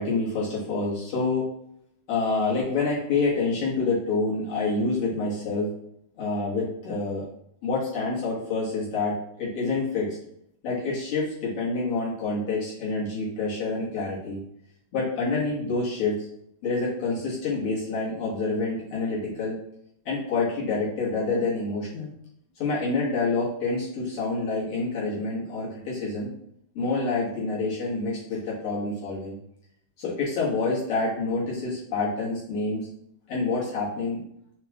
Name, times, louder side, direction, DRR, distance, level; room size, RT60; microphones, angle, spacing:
voice 1, 0.0-1.5 2.1-5.7 6.2-7.3 7.6-10.2 10.6-14.4 14.9-16.3 16.6-19.6 20.1-22.1 22.6-26.3 26.7-29.4 30.0-32.9 33.3-34.2, left 3 dB, 90° left, -7 dB, 2.5 m, -27 dB
6.3 x 2.3 x 2.9 m, 0.72 s
omnidirectional pair, 2.4 m